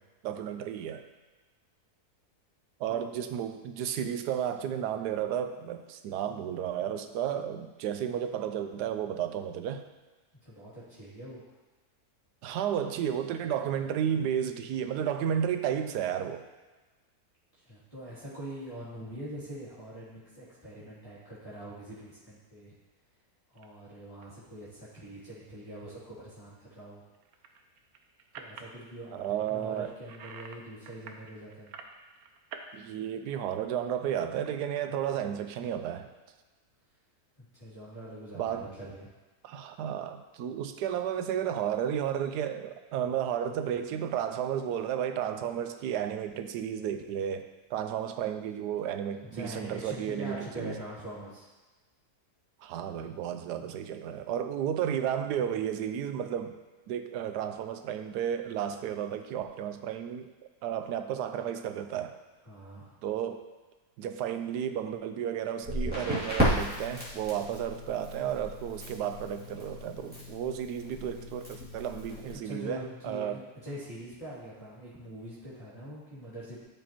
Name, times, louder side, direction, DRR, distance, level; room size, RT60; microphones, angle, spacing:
voice 1, 0.2-1.0 2.8-9.8 12.4-16.4 29.1-29.9 32.7-36.1 38.3-38.7 39.4-47.4 47.7-50.8 52.6-56.6 56.9-60.3 60.6-62.2 63.0-63.4 64.0-73.4, right 9 dB, 90° right, 8 dB, 1.2 m, -32 dB
voice 2, 10.4-11.4 17.6-22.7 23.5-27.0 28.3-31.7 37.5-39.1 49.2-51.5 62.4-63.0 72.3-76.6, right 1 dB, 20° left, -12 dB, 2.6 m, -43 dB
sound 1, 23.5-23.7 24.2-24.5 24.9-25.3 27.1-28.8 29.2-30.6 30.8-32.7 33.0-34.9, right 5 dB, 70° right, 1.1 m, -48 dB
Crackle, 65.6-72.3, equal, 5° right, 2.3 m, -34 dB
12.5 x 5.1 x 3.0 m, 1.2 s
omnidirectional pair, 1.7 m